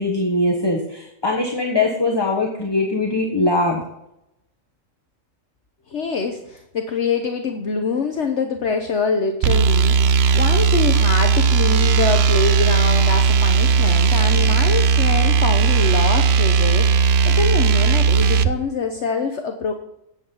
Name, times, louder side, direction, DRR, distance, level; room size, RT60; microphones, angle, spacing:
voice 1, 0.0-3.8, left 2 dB, 20° left, 1 dB, 1.3 m, -21 dB
voice 2, 5.9-19.7, left 4 dB, 60° left, 4 dB, 1.2 m, -25 dB
sound 1, 9.4-18.5, right 6 dB, 60° right, 0.8 m, -16 dB
10.0 x 8.6 x 5.6 m, 0.82 s
omnidirectional pair, 1.4 m